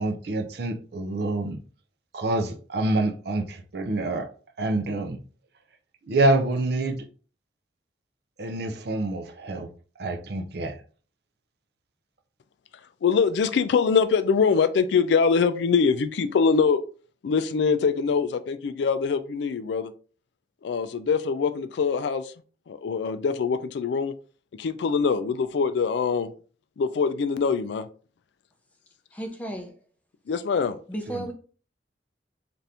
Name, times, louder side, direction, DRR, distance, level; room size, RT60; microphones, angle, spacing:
voice 1, 0.0-1.6 2.1-4.3 4.6-5.2 6.1-7.0 8.4-9.7 10.0-10.8 31.1-31.3, right 2 dB, 55° right, 0.4 m, -26 dB
voice 2, 13.0-16.8 17.2-19.9 20.6-22.3 22.7-24.1 24.5-26.3 26.8-27.9 30.3-30.8, left 5 dB, 70° left, 0.3 m, -23 dB
voice 3, 29.1-29.7 30.9-31.3, right 1 dB, 10° left, 0.5 m, -33 dB
2.7 x 2.5 x 3.3 m
head